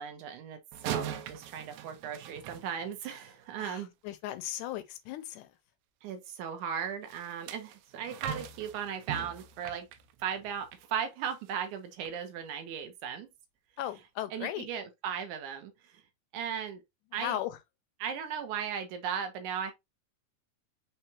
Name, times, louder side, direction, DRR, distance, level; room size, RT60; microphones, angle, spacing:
voice 1, 0.0-3.9 6.0-9.9 10.2-13.3 14.3-16.0 16.3-16.8 17.1-17.4 18.0-19.7, right 8 dB, 70° right, 2.1 m, -37 dB
sound 1, 0.7-3.3 7.1-10.9 11.3-11.5 12.1-12.2, right 10 dB, 85° right, 2.4 m, -41 dB
voice 2, 3.6-5.5 13.8-14.7 17.1-17.6, left 12 dB, 80° left, 1.9 m, -37 dB
5.7 x 3.3 x 2.7 m
omnidirectional pair, 3.9 m